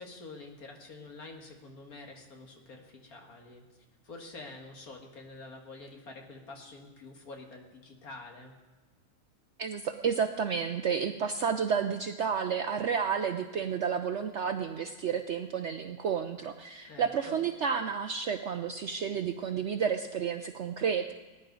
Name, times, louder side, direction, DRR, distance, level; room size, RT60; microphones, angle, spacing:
voice 1, 0.0-8.5 16.9-17.4, left 3 dB, 65° left, 2 dB, 2.2 m, -47 dB
voice 2, 9.6-21.1, right 7 dB, 65° right, 8 dB, 0.7 m, -31 dB
19.0 x 10.5 x 3.9 m, 1.2 s
omnidirectional pair, 1.7 m